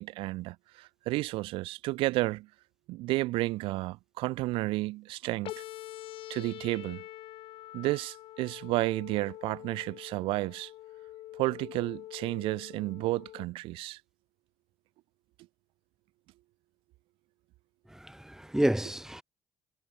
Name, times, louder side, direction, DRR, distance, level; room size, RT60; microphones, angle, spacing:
voice 1, 0.0-2.5 2.9-5.6 6.3-7.0 7.7-10.7 11.4-14.0, right 19 dB, 75° right, 2.0 m, -32 dB
sound 1, 5.4-13.5, left 15 dB, 70° left, 6.4 m, -45 dB
voice 2, 17.9-19.2, right 1 dB, 5° right, 1.0 m, -30 dB
hypercardioid pair, 55°, 9 cm